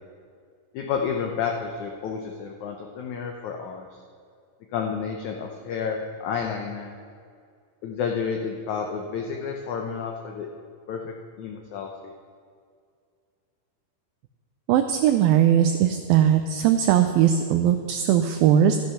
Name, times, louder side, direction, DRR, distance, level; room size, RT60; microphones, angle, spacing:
voice 1, 0.7-3.9 4.7-6.9 7.8-10.5 10.9-12.1, left 6 dB, 75° left, 2 dB, 1.7 m, -30 dB
voice 2, 14.7-18.8, right 10 dB, 80° right, 7 dB, 2.2 m, -19 dB
12.5 x 11.0 x 5.7 m, 2.2 s
omnidirectional pair, 4.5 m